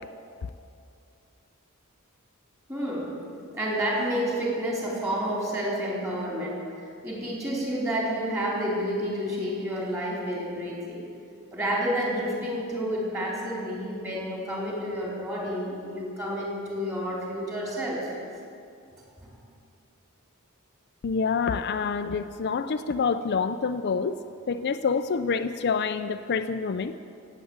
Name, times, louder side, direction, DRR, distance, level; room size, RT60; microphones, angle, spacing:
voice 1, 2.7-3.1 3.5-6.6 7.0-11.0 11.5-18.2, equal, 15° right, -4 dB, 4.2 m, -29 dB
voice 2, 21.0-24.2 24.5-26.9, left 5 dB, 50° left, 9 dB, 0.4 m, -27 dB
17.0 x 8.5 x 8.7 m, 2.5 s
head